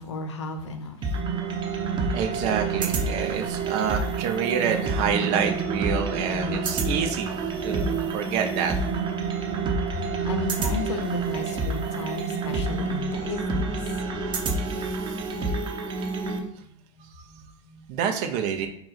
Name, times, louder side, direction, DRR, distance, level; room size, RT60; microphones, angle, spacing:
voice 1, 0.0-2.2 9.9-13.8 16.6-17.9, left 3 dB, 80° left, 6 dB, 0.7 m, -35 dB
sound 1, 1.0-16.4, right 4 dB, 30° right, 0.9 m, -28 dB
voice 2, 2.1-7.3 7.6-8.8 14.7-15.2 17.2-17.3 17.9-18.7, right 7 dB, 55° right, 4 dB, 0.6 m, -27 dB
3.9 x 2.3 x 4.1 m, 0.77 s
hypercardioid pair, 90°, 15 cm